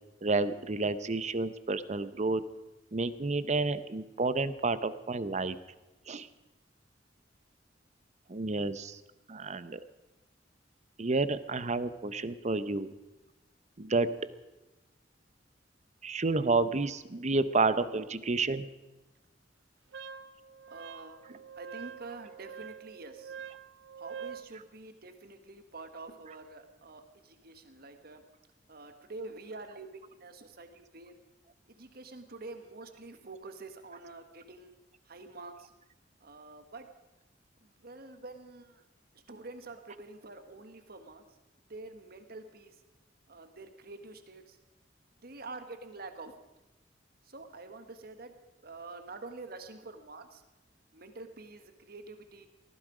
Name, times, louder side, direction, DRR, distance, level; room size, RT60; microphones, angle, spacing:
voice 1, 0.2-2.5 2.9-5.6 6.1-6.3 8.3-9.0 9.3-9.8 11.0-12.9 13.8-14.2 16.0-18.7, right 3 dB, 40° right, 14 dB, 0.8 m, -30 dB
voice 2, 18.0-18.3 20.7-23.4 24.0-28.2 28.7-31.2 31.7-34.8 35.1-35.7 36.2-36.9 37.6-38.8 39.1-41.2 41.7-42.8 43.3-44.6 45.2-46.3 47.2-48.3 48.6-50.4 50.9-52.5, right 3 dB, 55° right, 8 dB, 1.5 m, -47 dB
Wind instrument woodwind instrument, 19.9-24.5, right 7 dB, 75° right, 0.6 m, -45 dB
19.0 x 15.0 x 5.0 m, 1.0 s
head